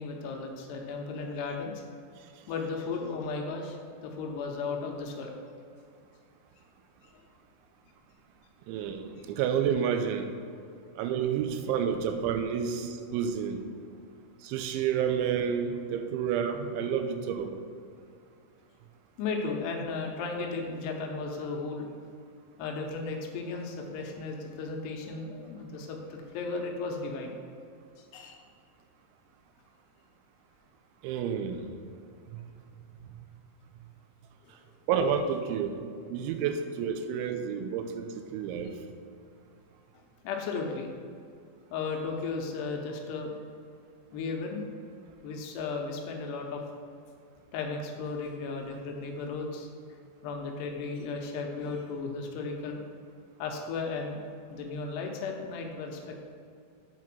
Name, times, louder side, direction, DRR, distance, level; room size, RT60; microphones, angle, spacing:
voice 1, 0.0-1.8 2.5-3.8 4.0-5.3 9.2-9.3 19.2-21.9 22.6-27.3 28.1-28.4 34.4-34.5 40.2-40.9 41.7-43.3 44.1-44.6 45.2-46.6 47.5-49.7 50.2-52.8 53.4-54.2 54.5-56.2, left 4 dB, 75° left, 2 dB, 2.7 m, -35 dB
voice 2, 8.7-10.4 11.0-13.6 14.4-17.6 31.0-31.7 32.3-32.4 34.9-35.8 36.1-38.7, right 7 dB, 90° right, 7 dB, 3.0 m, -30 dB
8.2 x 4.6 x 5.9 m, 2.3 s
omnidirectional pair, 5.3 m